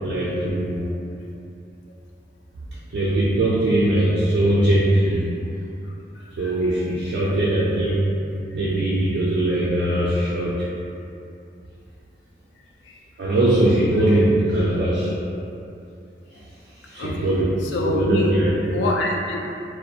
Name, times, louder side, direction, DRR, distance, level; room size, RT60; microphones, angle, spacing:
voice 1, 0.0-0.9 2.9-5.3 6.4-8.1 8.5-10.5 13.2-15.1 16.8-17.6 17.8-18.8, right 1 dB, 75° right, -8 dB, 0.3 m, -20 dB
voice 2, 17.7-18.3 18.7-19.6, left 2 dB, 85° left, 0 dB, 0.3 m, -25 dB
2.3 x 2.1 x 2.7 m, 2.7 s
head